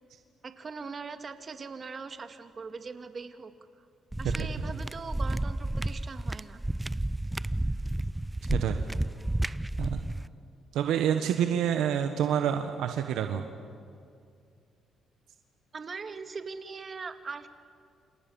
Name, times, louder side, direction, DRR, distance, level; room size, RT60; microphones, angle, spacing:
voice 1, 0.4-3.5 4.2-6.6 15.7-17.5, right 4 dB, 40° right, 8 dB, 2.2 m, -41 dB
sound 1, 4.1-10.3, right 1 dB, 10° right, 0.6 m, -31 dB
voice 2, 8.5-8.8 9.8-10.0 10.7-13.4, right 9 dB, 85° right, 6 dB, 1.4 m, -27 dB
28.0 x 28.0 x 7.2 m, 2.3 s
cardioid pair, 90°, 0 cm